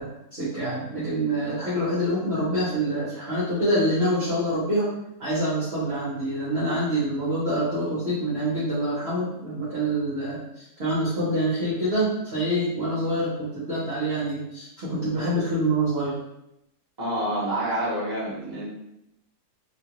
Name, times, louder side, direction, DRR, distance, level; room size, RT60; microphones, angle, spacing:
voice 1, 0.0-4.9 5.2-16.2, right 1 dB, 50° right, -9 dB, 0.9 m, -26 dB
voice 2, 17.0-18.7, right 1 dB, 15° right, -8 dB, 1.1 m, -27 dB
2.8 x 2.3 x 2.9 m, 0.83 s
omnidirectional pair, 1.8 m